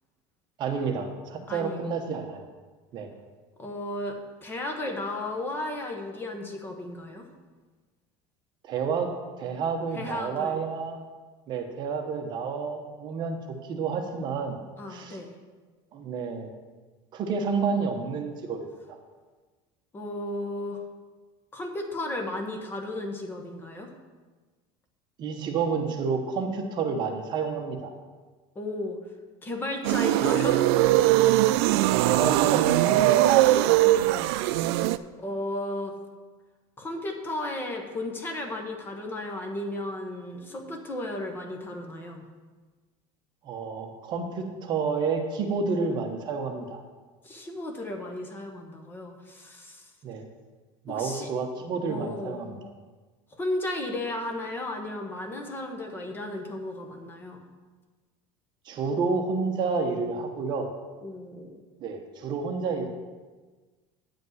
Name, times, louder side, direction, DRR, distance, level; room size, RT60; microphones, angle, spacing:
voice 1, 0.6-2.5 2.9-3.1 8.6-9.1 9.4-11.0 11.5-14.6 14.9-15.2 15.9-16.5 17.1-19.0 25.2-27.9 32.0-33.3 43.4-46.8 50.0-50.3 50.8-52.6 58.7-60.7 61.8-62.9, right 5 dB, 35° right, 5 dB, 0.9 m, -30 dB
voice 2, 1.5-1.9 3.6-7.2 9.9-10.6 14.8-15.3 19.9-20.8 21.5-23.9 28.5-29.0 29.4-30.7 33.4-34.9 35.2-35.9 36.8-42.3 47.2-49.9 50.9-51.3 51.9-52.4 53.3-57.4 61.0-61.6, left 1 dB, 15° left, 3 dB, 1.0 m, -34 dB
sound 1, 29.8-35.0, right 15 dB, 85° right, 0.4 m, -21 dB
9.4 x 5.2 x 7.8 m, 1.3 s
cardioid pair, 175°, 13 cm